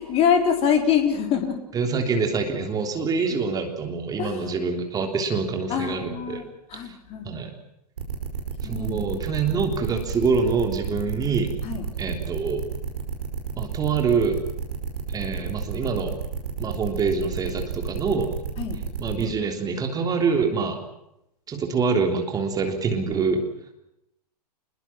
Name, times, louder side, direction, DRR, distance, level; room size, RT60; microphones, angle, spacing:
voice 1, 0.0-1.6 4.2-4.5 5.7-7.3 8.6-9.1 11.6-11.8 18.6-18.8, left 7 dB, 30° left, 5 dB, 3.9 m, -24 dB
voice 2, 1.7-6.4 6.7-6.8 7.2-7.6 8.6-11.5 12.0-12.6 13.5-14.4 15.1-16.1 16.6-18.3 19.0-20.8 21.5-23.4, right 5 dB, 20° right, 4 dB, 3.4 m, -25 dB
sound 1, 8.0-19.2, right 7 dB, 60° right, 5.2 m, -31 dB
26.5 x 22.0 x 6.0 m, 0.83 s
figure-of-eight pair, 110°, 21 cm